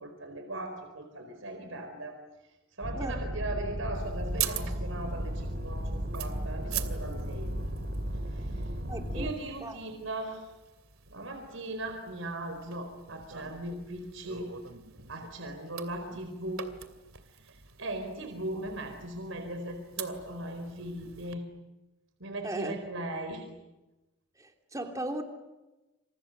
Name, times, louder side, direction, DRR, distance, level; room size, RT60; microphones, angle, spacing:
voice 1, 0.0-2.1 2.8-7.5 8.3-8.6 9.1-10.5 11.1-14.5 15.1-16.7 17.4-21.4 22.2-23.5, right 1 dB, 70° right, 5 dB, 4.5 m, -38 dB
sound 1, 2.8-9.3, equal, 55° right, 5.0 m, -35 dB
sound 2, 3.9-21.3, right 11 dB, 90° right, 2.7 m, -44 dB
voice 2, 8.9-9.8 22.4-22.7 24.4-25.2, right 1 dB, 15° right, 4 dB, 3.0 m, -37 dB
29.0 x 27.5 x 6.6 m, 1.0 s
head